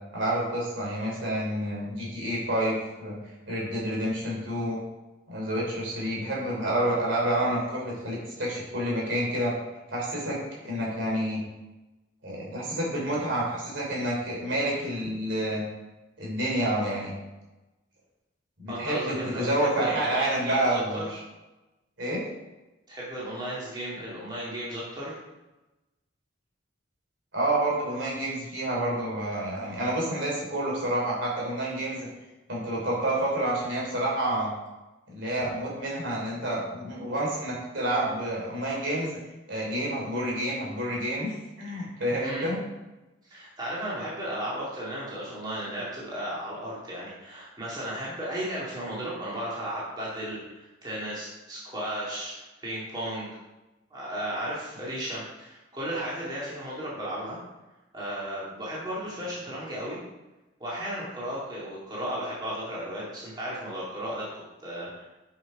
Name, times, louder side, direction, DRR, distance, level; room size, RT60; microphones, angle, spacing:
voice 1, 0.1-3.2 3.5-4.8 5.3-9.5 9.9-11.4 12.2-15.6 16.2-17.1 18.6-21.0 22.0-22.2 27.3-32.1 32.5-34.5 35.1-39.2 39.5-42.6, right 1 dB, 70° right, -4 dB, 3.2 m, -29 dB
voice 2, 18.7-21.2 22.9-25.2 42.2-42.5 43.2-53.3 53.9-57.4 57.9-60.0 60.6-64.3 64.6-65.1, right 1 dB, 20° right, -7 dB, 2.3 m, -34 dB
7.6 x 5.8 x 4.8 m, 1.1 s
head